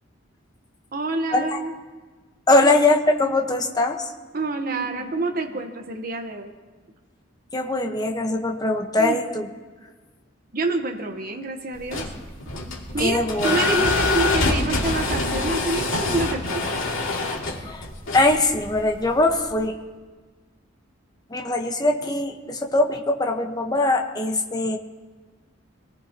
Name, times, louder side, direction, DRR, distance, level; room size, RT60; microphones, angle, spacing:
voice 1, 0.9-1.7 4.3-6.5 9.0-9.2 10.5-12.1 12.5-16.8, right 2 dB, 45° right, 3 dB, 1.1 m, -27 dB
voice 2, 2.5-4.1 7.5-9.5 13.0-13.7 17.5-17.9 18.1-19.8 21.3-24.8, left 2 dB, 20° left, 2 dB, 1.1 m, -22 dB
sound 1, 11.7-19.6, left 3 dB, 80° left, 2.6 m, -26 dB
25.5 x 19.0 x 2.9 m, 1.4 s
head